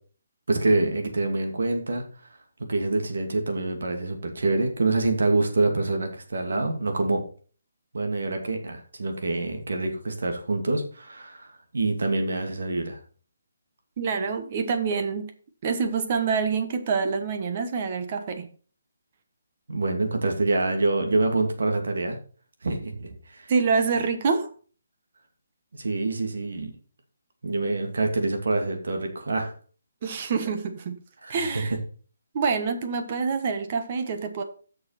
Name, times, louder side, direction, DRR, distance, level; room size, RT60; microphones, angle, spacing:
voice 1, 0.5-2.0 2.7-7.2 7.9-13.0 19.7-22.2 22.6-23.5 25.8-26.7 27.4-29.5 31.2-31.8, right 2 dB, 75° right, 4 dB, 2.5 m, -26 dB
voice 2, 14.0-15.3 15.6-18.5 23.5-24.5 30.0-31.0 31.3-31.7 32.3-34.4, right 5 dB, 30° right, 8 dB, 1.1 m, -26 dB
7.7 x 6.4 x 5.8 m, 0.41 s
hypercardioid pair, 170°, 0 cm